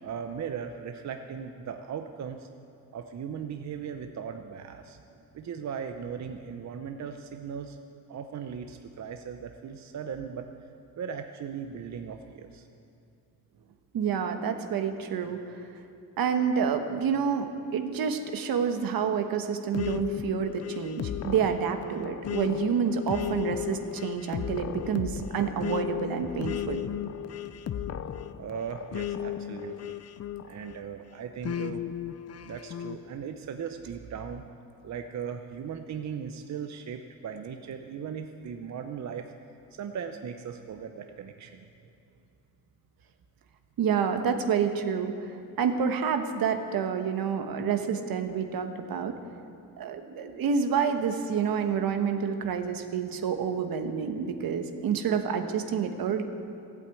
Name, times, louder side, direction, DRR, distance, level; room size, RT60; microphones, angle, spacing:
voice 1, 0.0-2.5 2.9-5.0 5.3-7.8 8.1-10.5 11.0-12.7 28.4-30.0 30.4-31.8 32.4-34.5 34.8-39.3 39.7-41.7, right 7 dB, 50° right, 6 dB, 0.8 m, -38 dB
voice 2, 13.9-15.4 16.2-26.8 43.8-49.2 49.8-56.2, right 7 dB, 70° right, 7 dB, 1.2 m, -28 dB
sound 1, 19.7-30.8 31.4-33.0, left 10 dB, 45° left, 0.6 m, -35 dB
14.5 x 8.5 x 8.4 m, 2.6 s
cardioid pair, 110°, 36 cm